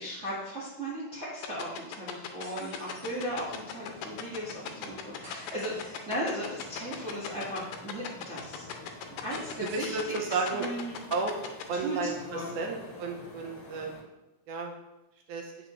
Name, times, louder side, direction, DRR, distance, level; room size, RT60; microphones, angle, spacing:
voice 1, 0.0-8.9 9.2-10.2 10.5-11.0 11.7-12.6, equal, 50° right, -8 dB, 0.7 m, -37 dB
sound 1, 1.4-11.6, left 11 dB, 80° left, 2.2 m, -37 dB
sound 2, 2.4-3.7 5.2-6.2 9.3-10.5, equal, 20° right, 1.5 m, -52 dB
sound 3, 2.8-14.0, left 2 dB, 60° left, 2.5 m, -50 dB
voice 2, 9.7-10.7 11.1-11.3 11.7-13.9 14.5-14.7 15.3-15.5, right 4 dB, 70° right, 1 dB, 2.2 m, -32 dB
7.9 x 5.9 x 3.1 m, 0.93 s
omnidirectional pair, 4.0 m